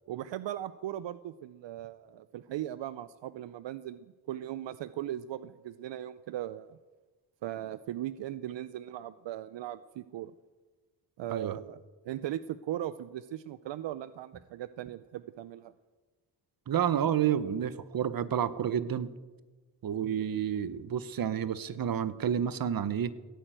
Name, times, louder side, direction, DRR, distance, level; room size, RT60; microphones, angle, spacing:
voice 1, 0.1-6.8 7.4-10.3 11.2-11.8 12.0-15.7, right 12 dB, 75° right, 15 dB, 0.6 m, -38 dB
voice 2, 16.7-19.1 19.8-23.1, right 9 dB, 50° right, 16 dB, 0.9 m, -30 dB
16.5 x 9.1 x 9.0 m, 1.3 s
cardioid pair, 105°, 44 cm